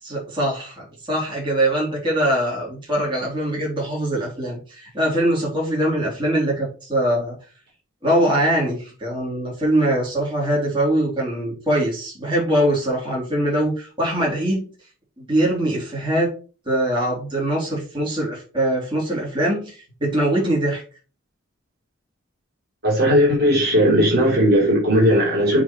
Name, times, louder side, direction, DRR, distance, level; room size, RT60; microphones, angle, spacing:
voice 1, 0.0-7.4 8.0-14.7 15.2-16.3 16.6-20.8, right 1 dB, 25° right, 3.3 m, -22 dB
voice 2, 22.8-25.6, equal, 45° right, 3.0 m, -17 dB
7.5 x 4.1 x 4.4 m
head